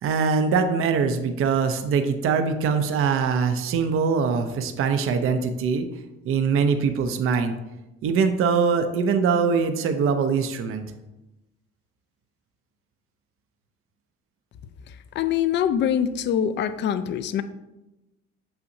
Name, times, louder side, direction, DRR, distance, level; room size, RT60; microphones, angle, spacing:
voice 1, 0.0-5.9 6.2-7.6 8.0-10.9, right 5 dB, 45° right, 7 dB, 0.6 m, -22 dB
voice 2, 14.9-17.4, left 9 dB, 40° left, 12 dB, 0.4 m, -24 dB
6.7 x 5.7 x 2.7 m, 0.99 s
cardioid pair, 130°, 30 cm